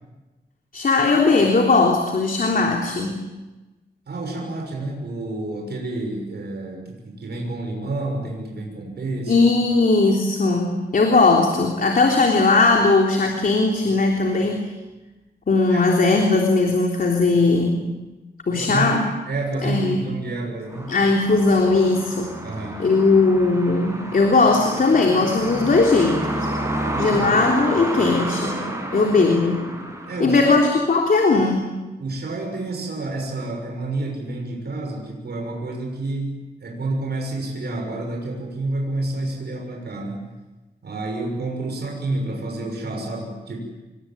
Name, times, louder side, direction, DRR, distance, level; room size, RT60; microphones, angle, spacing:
voice 1, 0.7-3.2 9.3-14.7 15.5-17.8 18.5-19.0 19.6-20.0 20.9-22.3 22.8-26.5 27.0-28.6 28.9-29.7 30.2-31.7, left 3 dB, 55° left, 1 dB, 3.4 m, -18 dB
voice 2, 4.1-9.5 15.7-15.8 18.5-18.9 19.3-20.9 22.4-22.8 30.1-30.6 32.0-40.2 40.8-43.6, right 2 dB, 70° right, 1 dB, 6.3 m, -29 dB
sound 1, 20.7-30.9, right 1 dB, 15° right, 6.1 m, -30 dB
27.0 x 22.5 x 8.9 m, 1.1 s
wide cardioid pair, 155°, 18 cm